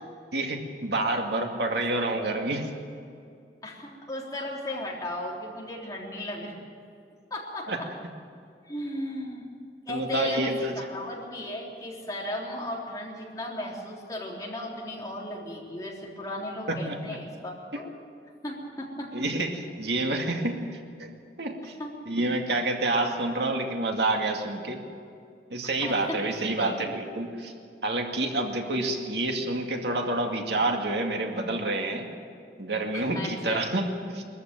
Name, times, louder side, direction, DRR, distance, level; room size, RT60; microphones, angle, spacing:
voice 1, 0.3-2.7 7.7-7.8 9.9-10.7 16.7-17.2 17.7-17.9 19.1-21.1 21.4-21.7 22.1-24.8 25.5-27.5 27.8-32.1 32.6-34.2, right 2 dB, 75° right, 2 dB, 2.3 m, -28 dB
voice 2, 3.6-6.5 7.3-7.9 8.6-9.5 9.9-17.9 18.4-19.1 21.8-21.9 25.8-26.8 32.9-33.7, left 1 dB, 20° left, -3 dB, 3.7 m, -36 dB
22.5 x 14.5 x 9.3 m, 2.4 s
head